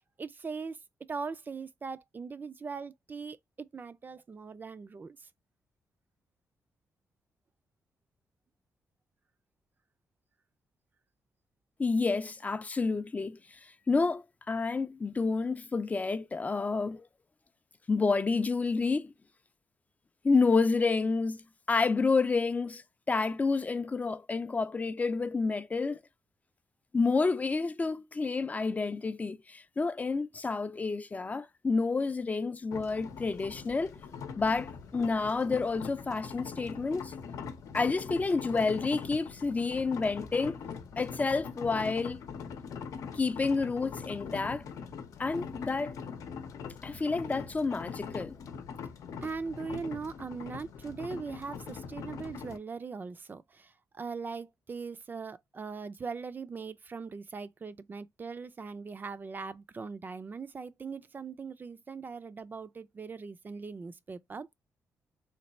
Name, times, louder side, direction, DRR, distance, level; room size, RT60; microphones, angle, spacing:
voice 1, 0.2-0.8 1.1-5.3 49.2-64.5, right 5 dB, 35° right, 0.4 m, -40 dB
voice 2, 11.8-17.1 17.9-19.1 20.2-26.0 26.9-34.0 34.4-37.1 37.7-40.6 41.0-42.2 43.1-44.6 45.2-46.0 46.8-48.4, left 4 dB, 25° left, 0.4 m, -29 dB
sound 1, 32.7-52.6, left 6 dB, 85° left, 0.7 m, -42 dB
3.3 x 2.3 x 4.1 m
cardioid pair, 95°, 6 cm